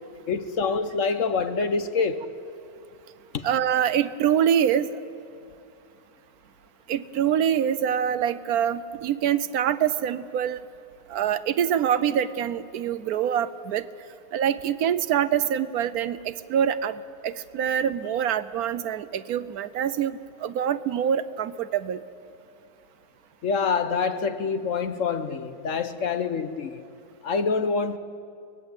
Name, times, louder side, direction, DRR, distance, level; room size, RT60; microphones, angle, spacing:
voice 1, 0.3-2.3 3.3-3.4 23.4-26.8 27.2-28.0, left 5 dB, 55° left, 1.2 m, -26 dB
voice 2, 3.4-4.9 6.9-10.6 11.1-13.8 14.3-22.0, right 9 dB, 70° right, 1.1 m, -25 dB
24.0 x 19.0 x 8.1 m
omnidirectional pair, 1.7 m